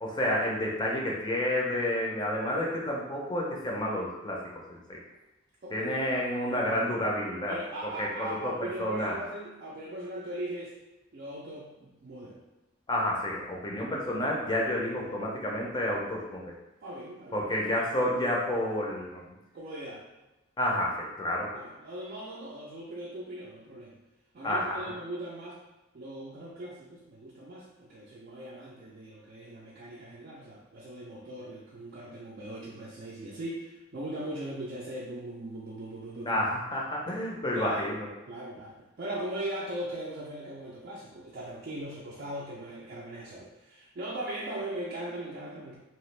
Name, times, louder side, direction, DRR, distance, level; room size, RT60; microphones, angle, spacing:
voice 1, 0.0-4.4 4.9-5.0 5.7-7.6 8.0-9.2 12.9-16.5 17.3-19.2 20.6-21.5 24.4-24.7 36.3-38.1, left 1 dB, 20° left, -2 dB, 0.5 m, -30 dB
voice 2, 7.5-10.8 11.1-12.4 14.8-14.9 16.8-17.7 19.5-20.0 21.5-24.0 24.3-25.6 25.9-36.5 37.5-38.0 38.3-45.8, right 1 dB, 45° right, -5 dB, 0.4 m, -39 dB
2.9 x 2.4 x 3.2 m, 1.0 s
head